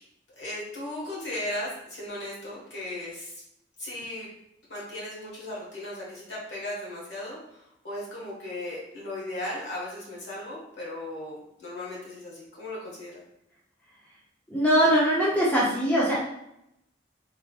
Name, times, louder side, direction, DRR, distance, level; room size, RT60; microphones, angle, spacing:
voice 1, 0.4-3.3 3.8-4.3 4.7-13.1, left 1 dB, 65° left, -6 dB, 1.4 m, -36 dB
voice 2, 14.5-16.2, equal, 10° left, -7 dB, 0.6 m, -22 dB
3.4 x 2.8 x 2.3 m, 0.80 s
head